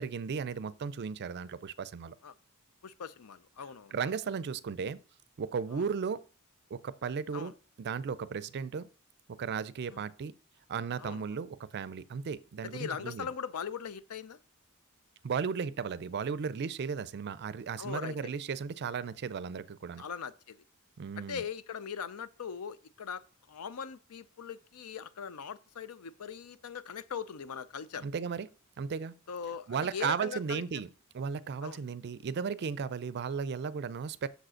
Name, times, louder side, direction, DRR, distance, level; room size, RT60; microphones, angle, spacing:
voice 1, 0.0-2.1 3.9-5.0 5.4-6.3 6.7-8.9 9.3-10.3 10.7-13.3 15.2-20.1 21.0-21.4 28.0-28.5 28.8-29.1 29.7-30.9 31.1-34.3, right 6 dB, 50° right, 0.4 m, -35 dB
voice 2, 2.8-3.9 5.7-5.8 7.3-7.5 9.9-10.0 11.0-11.3 12.6-14.4 17.8-18.3 20.0-20.6 21.2-23.2 23.5-28.0 29.3-30.6 31.6-31.8, left 7 dB, 85° left, 0.5 m, -40 dB
6.6 x 5.0 x 6.2 m
head